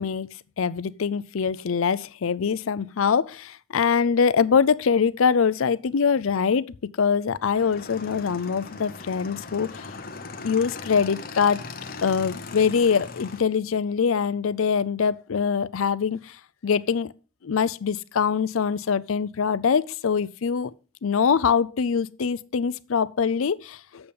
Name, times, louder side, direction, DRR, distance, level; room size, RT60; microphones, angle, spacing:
voice 1, 0.0-9.9 10.4-11.6 12.0-16.4 16.6-17.1 17.4-20.7 21.0-24.1, left 6 dB, 75° left, 0.5 m, -23 dB
Motorcycle / Engine, 7.5-13.4, left 3 dB, 45° left, 0.9 m, -39 dB
8.6 x 7.0 x 5.2 m
head